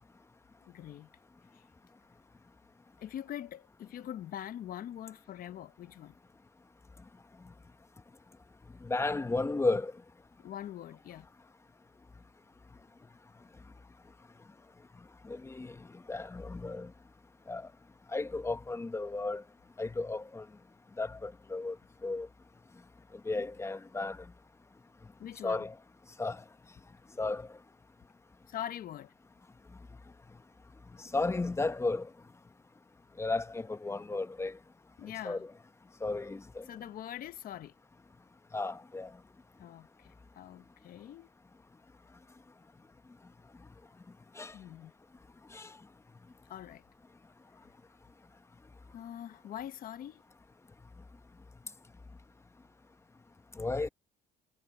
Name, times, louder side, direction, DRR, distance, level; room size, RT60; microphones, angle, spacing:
voice 1, 0.6-1.1 1.5-1.6 3.0-6.2 10.4-11.3 25.2-25.6 28.5-29.1 35.0-35.5 36.6-37.8 39.6-41.3 44.5-44.9 46.5-46.8 48.9-50.2, left 11 dB, 60° left, 1.0 m, -43 dB
voice 2, 8.8-9.9 15.2-15.8 16.1-16.9 17.5-17.7 18.1-19.4 19.8-20.4 21.0-21.8 22.0-22.3 23.3-24.2 25.4-25.7 26.2-26.4 27.2-27.5 31.1-32.1 33.2-34.6 35.2-35.5 36.0-36.6 38.5-39.1 44.4-44.5 45.5-45.7 53.6-53.9, left 3 dB, 15° left, 0.9 m, -33 dB
cardioid pair, 110°, 17 cm